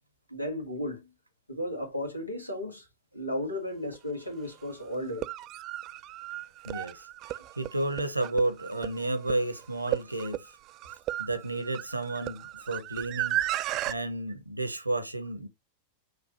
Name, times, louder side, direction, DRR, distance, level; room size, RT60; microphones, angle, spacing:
voice 1, 0.3-1.1 1.5-2.9 3.1-5.3, left 1 dB, 85° left, 1.3 m, -34 dB
sound 1, 3.9-4.0 5.0-14.0, right 14 dB, 35° right, 0.3 m, -35 dB
voice 2, 6.6-7.1 7.6-10.5 11.2-13.4 13.9-15.5, right 2 dB, 85° right, 0.8 m, -31 dB
6.1 x 2.6 x 2.8 m
figure-of-eight pair, 90°, 0 cm